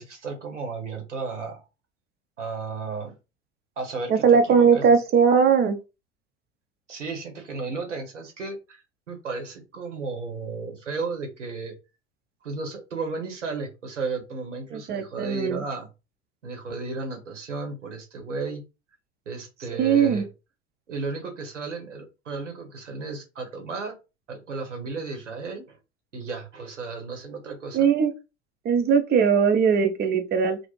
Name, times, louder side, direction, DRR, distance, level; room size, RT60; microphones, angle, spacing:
voice 1, 0.0-1.6 2.4-3.2 3.8-4.8 6.9-11.7 12.4-15.9 16.4-18.6 19.3-20.3 20.9-24.0 24.3-25.8 26.1-27.9, right 4 dB, 85° right, 0.8 m, -34 dB
voice 2, 4.1-5.8 14.7-15.6 19.8-20.2 27.7-28.1 28.6-30.6, right 6 dB, 30° right, 0.5 m, -20 dB
2.4 x 2.0 x 3.0 m
figure-of-eight pair, 75°, 36 cm